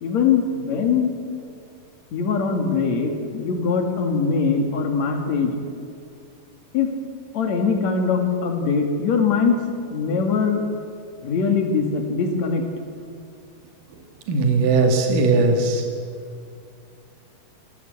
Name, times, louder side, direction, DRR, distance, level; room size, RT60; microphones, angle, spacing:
voice 1, 0.0-1.1 2.1-5.6 6.7-7.0 7.3-9.6 9.9-10.6 11.2-12.6, left 5 dB, 50° left, 4 dB, 3.3 m, -22 dB
voice 2, 14.3-15.9, right 3 dB, 60° right, 3 dB, 3.7 m, -18 dB
25.5 x 14.5 x 8.1 m, 2.3 s
omnidirectional pair, 4.5 m